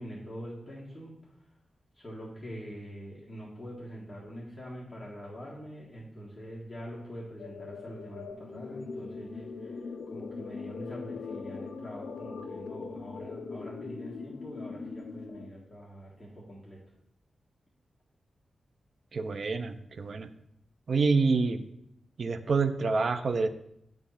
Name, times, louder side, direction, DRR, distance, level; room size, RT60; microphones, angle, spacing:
voice 1, 0.0-1.3 1.9-16.8, equal, 15° left, -7 dB, 1.7 m, -44 dB
sound 1, 7.4-15.5, left 4 dB, 80° left, 0.6 m, -41 dB
voice 2, 19.1-20.3 20.9-21.6 22.2-23.5, right 4 dB, 55° right, 11 dB, 0.5 m, -27 dB
7.8 x 3.6 x 5.7 m, 0.77 s
wide cardioid pair, 110°, 0 cm